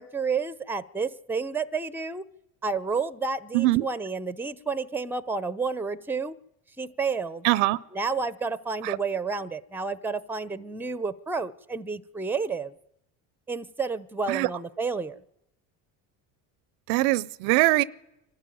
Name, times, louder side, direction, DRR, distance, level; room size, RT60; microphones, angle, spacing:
voice 1, 0.0-2.2 2.6-6.3 6.8-7.5 7.9-12.7 13.5-15.2, right 4 dB, 5° right, 16 dB, 0.7 m, -30 dB
voice 2, 3.5-3.8 7.4-7.8 8.8-9.0 14.3-14.5 16.9-17.8, right 19 dB, 80° right, 21 dB, 0.7 m, -22 dB
24.5 x 12.5 x 9.3 m, 0.88 s
supercardioid pair, 80°, 47 cm